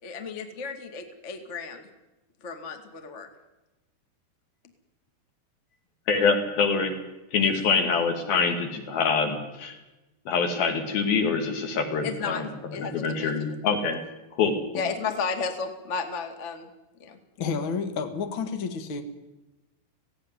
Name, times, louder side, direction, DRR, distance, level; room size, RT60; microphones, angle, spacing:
voice 1, 0.0-1.9 2.4-3.3 7.4-7.5 12.0-12.4 12.7-13.6 14.7-16.7 17.0-17.2, left 5 dB, 40° left, 6 dB, 1.0 m, -33 dB
voice 2, 6.1-6.9 7.3-9.8 10.3-14.0 14.3-14.8, left 5 dB, 60° left, 5 dB, 4.1 m, -25 dB
voice 3, 17.4-19.0, left 5 dB, 75° left, 8 dB, 1.1 m, -30 dB
17.5 x 17.0 x 9.7 m, 1.0 s
omnidirectional pair, 5.2 m